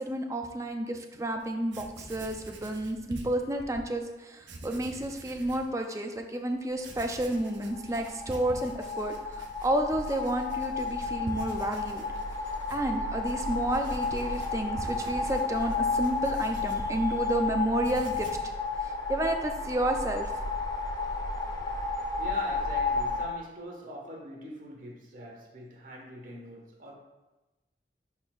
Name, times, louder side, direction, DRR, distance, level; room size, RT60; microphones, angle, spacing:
voice 1, 0.0-12.0 12.7-18.3 18.8-20.3, right 1 dB, 15° right, 4 dB, 0.5 m, -31 dB
Writing, 1.4-1.5 1.7-3.9 4.4-5.7 6.2-6.3 6.8-17.4 17.7-18.5, right 1 dB, 90° right, 0.9 m, -46 dB
sound 1, 7.3-23.3, left 4 dB, 25° left, 0.8 m, -32 dB
voice 2, 22.2-26.9, right 1 dB, 50° right, -1 dB, 1.4 m, -42 dB
10.5 x 4.3 x 2.4 m, 1.1 s
head